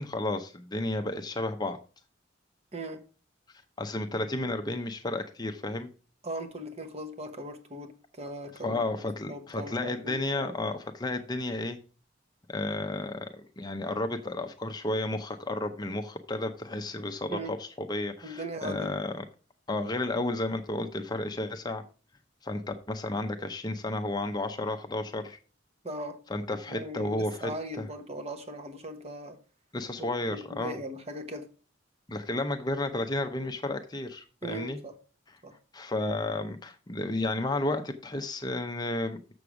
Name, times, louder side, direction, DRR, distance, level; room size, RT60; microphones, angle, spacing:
voice 1, 0.0-1.8 3.8-5.9 8.6-11.8 12.5-19.2 19.7-21.8 22.4-25.4 26.3-27.5 27.8-27.9 29.7-30.8 32.1-34.8 35.7-39.3, left 2 dB, 20° left, 0.6 m, -32 dB
voice 2, 6.2-8.8 9.3-10.5 17.3-17.5 18.2-18.9 25.8-26.2 26.7-29.4 30.3-31.5 34.4-35.0 35.4-35.6, right 1 dB, 35° right, 1.0 m, -39 dB
6.9 x 6.6 x 4.8 m
head